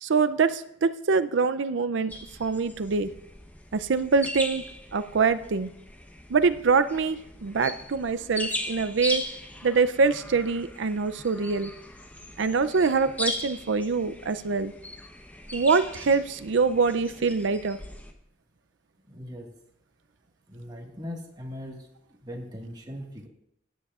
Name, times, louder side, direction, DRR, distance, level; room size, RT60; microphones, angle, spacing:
voice 1, 0.0-2.1 2.4-3.1 3.7-4.6 4.9-5.7 6.3-9.2 9.6-11.7 12.4-14.7 15.5-17.8, right 4 dB, 70° right, 12 dB, 0.5 m, -24 dB
sound 1, 2.1-18.1, left 1 dB, 10° left, 0.9 m, -38 dB
voice 2, 19.1-19.5 20.5-21.9 22.2-23.3, equal, 20° right, 0 dB, 1.6 m, -39 dB
16.0 x 10.0 x 2.4 m, 0.78 s
head